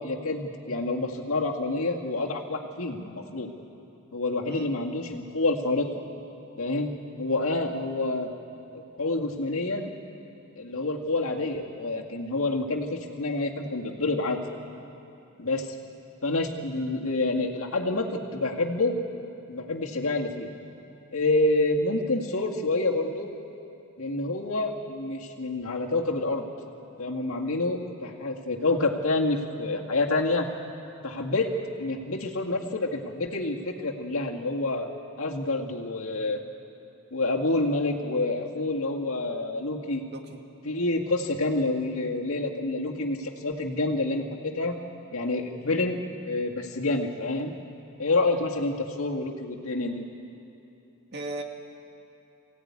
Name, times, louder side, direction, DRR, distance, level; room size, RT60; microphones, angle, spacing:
voice 1, 0.0-3.5 4.1-5.9 6.6-8.3 8.7-9.9 10.6-14.4 15.4-15.8 16.2-18.9 19.5-20.5 21.1-23.3 24.0-26.5 27.0-30.5 31.0-31.5 31.8-34.9 35.2-36.4 37.1-40.0 40.6-44.8 45.1-46.0 46.3-47.5 48.0-50.0, left 2 dB, 75° left, 1 dB, 2.1 m, -28 dB
voice 2, 40.1-40.4 51.1-51.4, right 2 dB, 50° right, 3 dB, 1.9 m, -36 dB
23.5 x 16.5 x 9.7 m, 2.9 s
head